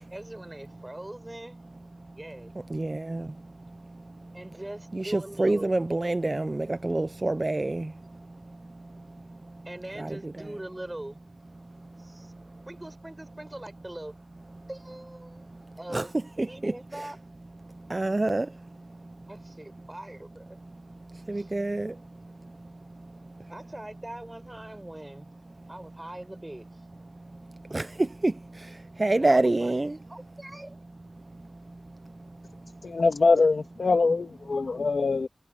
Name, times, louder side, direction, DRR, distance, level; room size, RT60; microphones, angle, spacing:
voice 1, 0.0-1.6 2.1-2.5 4.3-5.8 9.7-11.2 12.0-12.3 12.7-14.1 14.7-15.4 15.8-16.1 16.4-17.2 19.2-20.6 21.3-21.5 23.5-25.3 25.7-26.7 29.2-29.8 30.1-30.8, right 1 dB, 20° right, 7.1 m, -41 dB
voice 2, 2.7-4.4 4.9-9.6 10.0-10.3 11.8-12.6 14.6-14.7 15.2-16.1 16.4-17.0 17.6-19.3 20.7-23.5 27.1-30.0 31.3-33.0, right 2 dB, 40° right, 0.5 m, -30 dB
voice 3, 32.8-35.3, left 4 dB, 90° left, 2.6 m, -23 dB
wide cardioid pair, 70°, 0 cm